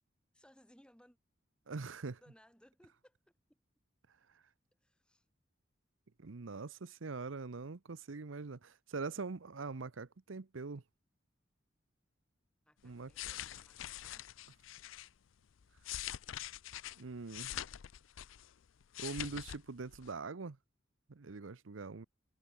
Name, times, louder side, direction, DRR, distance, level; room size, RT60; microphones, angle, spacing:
voice 1, 0.3-1.2 2.2-3.2 3.5-3.6 4.8-5.3 12.7-14.3, equal, 5° left, 5.6 m, -65 dB
voice 2, 1.7-2.2 4.1-4.4 6.2-10.8 12.8-13.3 17.0-17.5 19.0-20.6 21.1-22.1, right 4 dB, 90° right, 0.8 m, -43 dB
sound 1, 12.9-15.1 15.6-18.5 18.8-19.6 19.9-20.1, left 12 dB, 90° left, 0.5 m, -44 dB
head